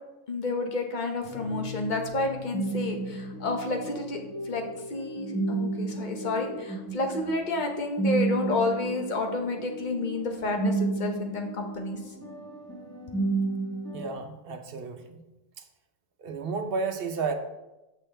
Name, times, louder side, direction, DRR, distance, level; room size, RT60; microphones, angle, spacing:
voice 1, 0.3-4.2 4.4-4.6 4.9-12.0, left 2 dB, 45° left, 3 dB, 0.9 m, -30 dB
sound 1, 1.2-14.1, right 3 dB, 15° left, 1.2 m, -33 dB
voice 2, 13.9-15.2 16.2-17.3, right 4 dB, 55° right, 6 dB, 0.8 m, -32 dB
6.8 x 6.2 x 3.3 m, 1.0 s
omnidirectional pair, 1.2 m